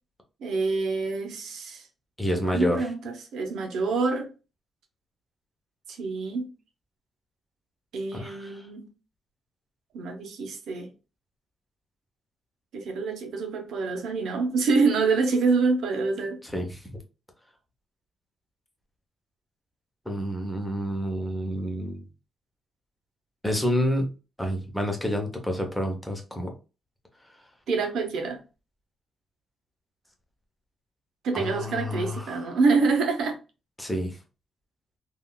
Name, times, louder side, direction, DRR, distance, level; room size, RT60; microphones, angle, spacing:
voice 1, 0.4-1.8 2.3-4.3 5.9-6.5 7.9-8.9 9.9-10.9 12.7-16.4 27.7-28.4 31.2-33.4, right 4 dB, 85° right, 0.7 m, -26 dB
voice 2, 2.2-2.8 8.1-8.7 16.4-16.9 20.1-22.1 23.4-24.1 24.4-26.5 31.3-32.4 33.8-34.2, equal, 5° left, 0.7 m, -29 dB
3.6 x 2.3 x 2.2 m
cardioid pair, 145°, 0 cm